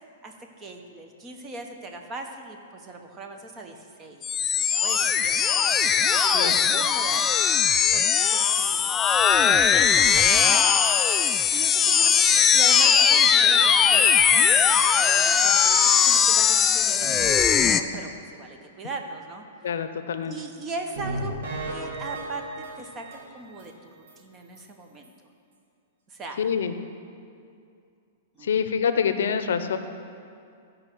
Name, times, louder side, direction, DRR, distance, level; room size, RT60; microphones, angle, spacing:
voice 1, 0.2-7.3 7.9-9.0 9.4-10.7 11.5-14.6 15.0-17.1 17.4-19.5 20.3-21.3 21.7-25.1 26.1-26.4 28.4-28.5, right 3 dB, 25° right, 4 dB, 1.0 m, -39 dB
sound 1, 4.2-17.8, left 7 dB, 20° left, 0.3 m, -20 dB
voice 2, 19.6-20.3 26.4-26.7 28.4-29.8, left 7 dB, 80° left, 10 dB, 0.6 m, -26 dB
sound 2, 21.0-23.7 24.1-24.2 24.6-24.7 25.0-25.1, right 1 dB, 65° right, 2.0 m, -35 dB
15.0 x 5.1 x 4.6 m, 2.4 s
hypercardioid pair, 140°, 0 cm